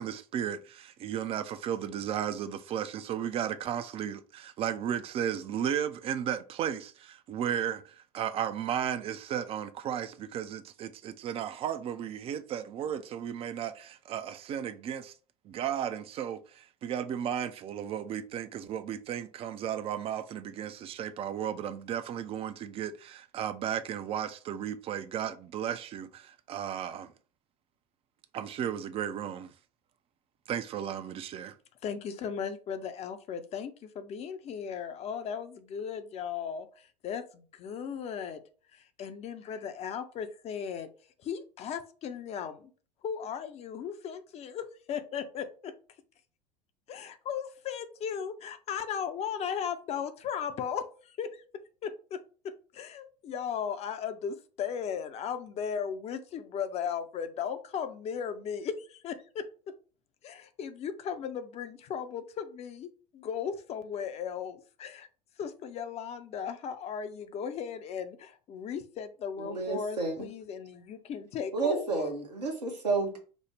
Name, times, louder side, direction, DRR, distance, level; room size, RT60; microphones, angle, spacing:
voice 1, 0.0-15.1 15.4-27.1 28.3-29.5 30.5-31.6, right 9 dB, 30° right, 0.4 m, -34 dB
voice 2, 31.8-38.4 39.0-40.9 41.2-42.7 43.0-45.7 46.9-51.4 51.8-52.2 52.7-59.4 60.2-62.9 63.1-65.1 65.4-72.2, left 7 dB, 30° left, 0.5 m, -36 dB
voice 3, 69.4-70.1 71.5-73.2, right 3 dB, 80° right, 0.9 m, -30 dB
5.1 x 2.0 x 3.2 m
figure-of-eight pair, 75°, 21 cm